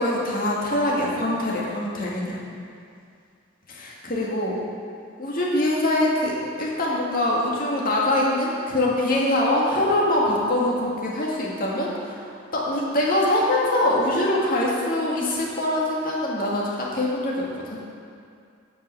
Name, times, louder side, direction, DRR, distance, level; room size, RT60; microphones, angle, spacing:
voice 1, 0.0-2.4 3.8-4.6 5.2-17.4 17.7-17.8, left 1 dB, 45° left, -4 dB, 1.9 m, -23 dB
9.4 x 5.3 x 7.6 m, 2.3 s
head